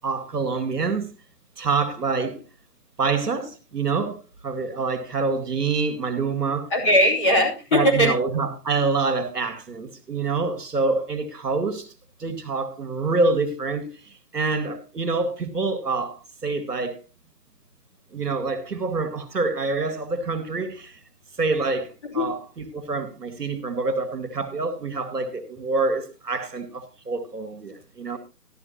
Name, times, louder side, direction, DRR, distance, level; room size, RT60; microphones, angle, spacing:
voice 1, 0.0-1.1 1.6-2.4 3.0-4.2 4.4-6.7 7.7-11.9 12.2-17.0 18.1-21.0 21.4-28.2, right 4 dB, 80° right, 2.2 m, -26 dB
voice 2, 6.7-8.1 22.0-22.3, left 1 dB, 20° left, 2.9 m, -19 dB
13.0 x 13.0 x 2.8 m
hypercardioid pair, 165°, 47 cm